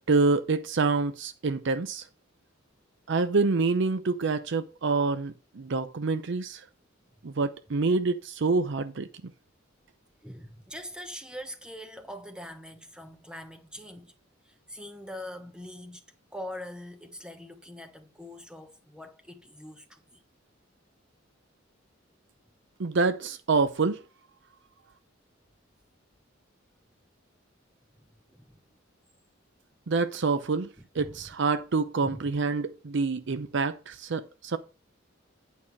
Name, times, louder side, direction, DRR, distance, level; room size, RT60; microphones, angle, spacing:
voice 1, 0.0-2.0 3.1-6.6 7.2-9.1 22.8-24.0 29.9-30.7 31.0-34.6, right 4 dB, 65° right, 0.6 m, -27 dB
voice 2, 10.2-14.1 14.4-16.0 16.3-20.2 28.3-28.6 30.3-30.4 31.0-31.3 32.0-32.2, left 1 dB, 5° right, 1.1 m, -43 dB
8.9 x 5.5 x 4.6 m
head